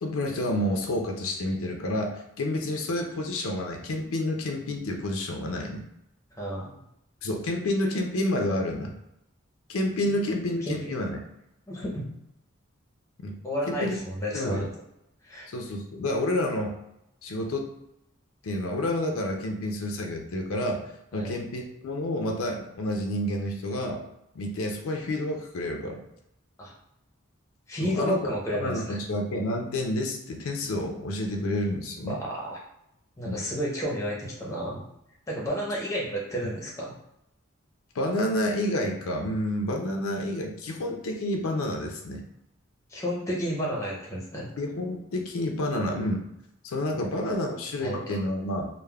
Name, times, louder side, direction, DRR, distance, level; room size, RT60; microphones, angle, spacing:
voice 1, 0.0-5.9 7.2-8.9 9.7-11.2 13.2-13.4 13.7-14.0 14.3-14.7 15.5-16.7 17.2-17.7 18.4-20.8 21.1-24.0 24.3-26.0 27.8-32.2 33.2-33.4 37.9-42.2 44.6-46.2 46.6-48.7, left 1 dB, 80° left, 3 dB, 0.5 m, -29 dB
voice 2, 6.3-6.7 10.6-10.8 11.7-12.1 13.4-14.7 15.2-15.5 21.1-21.3 26.6-26.7 27.7-29.0 32.1-32.6 33.2-34.8 35.3-36.9 42.9-44.5 47.0-47.1 47.8-48.0, equal, 15° left, -3 dB, 0.6 m, -31 dB
3.3 x 2.1 x 2.2 m, 0.82 s
head